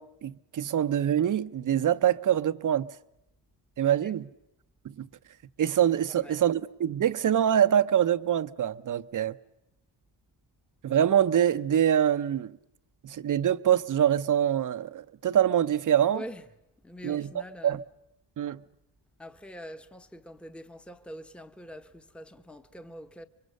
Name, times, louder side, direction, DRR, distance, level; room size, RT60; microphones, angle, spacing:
voice 1, 0.0-2.9 3.8-4.3 4.8-5.1 5.6-9.4 10.8-12.6 13.0-16.2 17.0-17.3 17.6-17.8 18.4-18.6, right 10 dB, 45° right, 0.8 m, -25 dB
voice 2, 6.1-6.4 16.1-16.5 16.8-17.8 19.2-23.2, equal, ahead, 1.0 m, -44 dB
27.5 x 23.5 x 6.7 m
cardioid pair, 85°, 45 cm